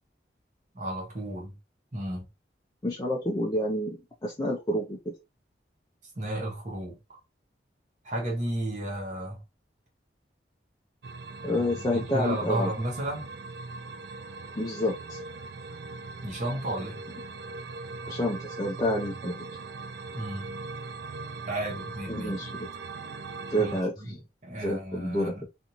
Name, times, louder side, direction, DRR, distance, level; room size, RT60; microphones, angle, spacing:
voice 1, 0.7-1.6 1.9-2.3 6.1-7.2 8.0-9.4 11.4-13.3 16.2-17.0 20.1-20.5 21.5-22.4 23.6-25.5, right 1 dB, 45° right, 1.1 m, -33 dB
voice 2, 2.8-5.0 11.4-12.7 14.6-15.2 18.1-19.3 22.1-22.7 23.5-23.9 24.6-25.5, equal, 20° left, 0.4 m, -28 dB
sound 1, 11.0-23.8, right 3 dB, 60° right, 0.4 m, -40 dB
2.6 x 2.5 x 2.8 m
head